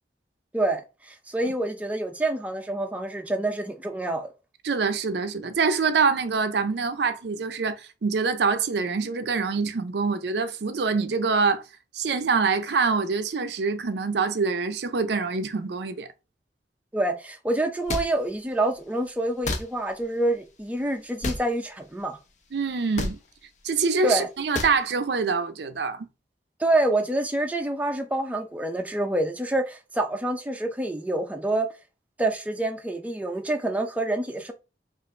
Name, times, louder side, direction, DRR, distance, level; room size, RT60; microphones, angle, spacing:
voice 1, 0.5-4.3 16.9-22.2 24.0-24.3 26.6-31.7 32.2-34.5, right 1 dB, 10° right, 0.5 m, -27 dB
voice 2, 4.6-11.6 11.9-16.1 22.5-23.2 23.6-26.1, right 4 dB, 65° right, 0.5 m, -25 dB
sound 1, 17.9-18.1 19.4-19.6 21.2-21.4 23.0-23.1 24.5-24.8, left 2 dB, 45° left, 0.7 m, -28 dB
5.0 x 2.5 x 3.2 m
head